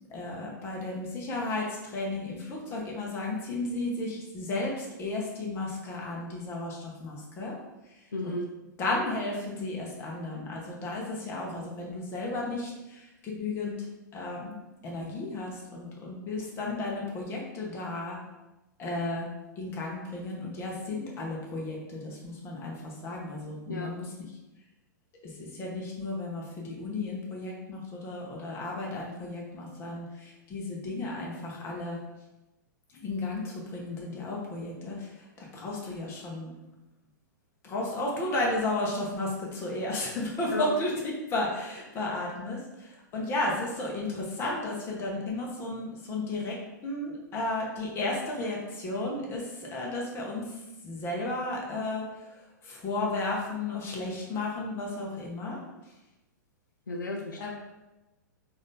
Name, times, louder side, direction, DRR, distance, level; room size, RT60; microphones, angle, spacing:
voice 1, 0.1-7.5 8.2-8.4 8.8-13.9 14.1-14.5 14.8-18.2 18.8-19.3 19.6-24.1 25.2-32.0 32.9-36.5 37.6-46.6 46.8-55.6 57.4-57.5, left 2 dB, 25° left, -2 dB, 1.0 m, -33 dB
voice 2, 8.1-8.4 23.7-23.9 40.5-40.7 56.9-57.5, left 2 dB, 70° left, 2 dB, 0.5 m, -33 dB
3.8 x 2.7 x 3.6 m, 1.0 s
figure-of-eight pair, 105°, 10 cm